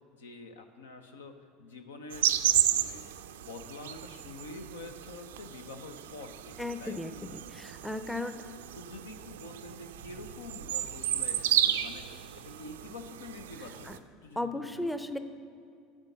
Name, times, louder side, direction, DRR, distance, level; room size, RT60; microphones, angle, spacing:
voice 1, 0.0-2.3 2.7-3.0 3.4-7.2 8.7-13.9 14.2-14.9, left 3 dB, 75° left, 7 dB, 0.7 m, -47 dB
sound 1, 2.1-14.0, right 12 dB, 70° right, 0.4 m, -33 dB
voice 2, 6.6-8.3 13.9-14.0 14.4-15.2, left 1 dB, 5° left, 9 dB, 0.6 m, -35 dB
8.9 x 6.3 x 6.7 m, 2.3 s
figure-of-eight pair, 70°, 0 cm